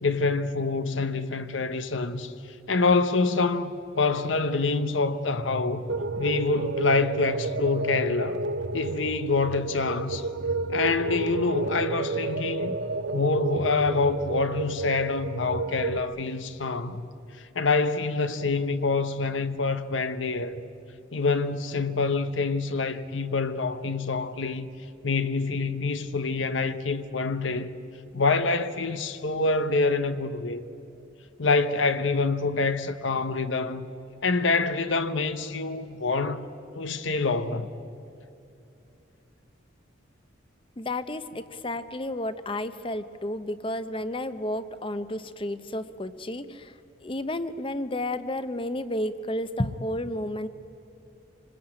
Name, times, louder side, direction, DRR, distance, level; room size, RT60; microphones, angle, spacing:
voice 1, 0.0-2.3 2.7-5.8 6.2-8.4 8.7-10.3 10.7-12.8 13.1-17.1 17.5-20.6 21.1-24.7 25.0-27.7 28.1-30.6 31.4-33.9 34.2-36.4 36.7-37.7, left 3 dB, 80° left, 1.0 m, -26 dB
sound 1, 5.9-16.0, right 3 dB, 65° right, 0.8 m, -31 dB
voice 2, 40.8-46.7 47.0-50.5, left 1 dB, 25° left, 0.8 m, -31 dB
26.5 x 20.0 x 8.9 m
head